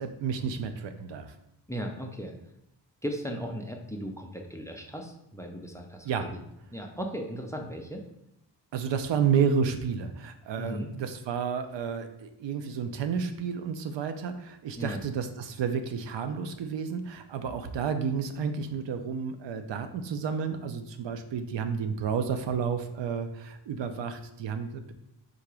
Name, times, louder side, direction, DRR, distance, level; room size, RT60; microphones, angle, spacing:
voice 1, 0.0-1.3 6.0-6.3 8.7-24.9, right 6 dB, 85° right, 8 dB, 0.6 m, -31 dB
voice 2, 1.7-2.4 3.0-6.4 6.7-8.0 10.6-10.9 14.8-15.0, equal, 10° left, 3 dB, 0.4 m, -37 dB
3.8 x 2.8 x 4.7 m, 0.81 s
wide cardioid pair, 135°, 42 cm